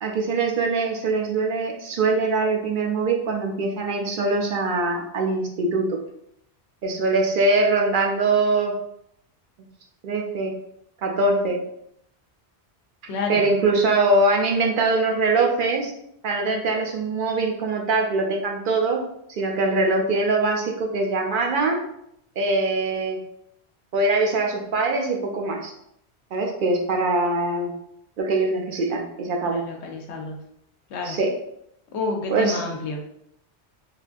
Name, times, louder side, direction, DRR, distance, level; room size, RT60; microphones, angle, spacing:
voice 1, 0.0-6.0 6.8-8.8 10.0-10.6 11.0-11.6 13.3-15.9 16.2-19.0 19.3-21.8 22.4-23.2 23.9-25.7 26.3-27.7 28.2-29.6 31.0-31.3 32.3-32.6, right 3 dB, 60° right, 1 dB, 0.6 m, -22 dB
voice 2, 13.1-13.5 29.4-30.4 30.9-31.2 31.9-33.1, left 3 dB, 85° left, 1 dB, 0.9 m, -29 dB
3.3 x 2.5 x 2.4 m, 0.74 s
omnidirectional pair, 1.1 m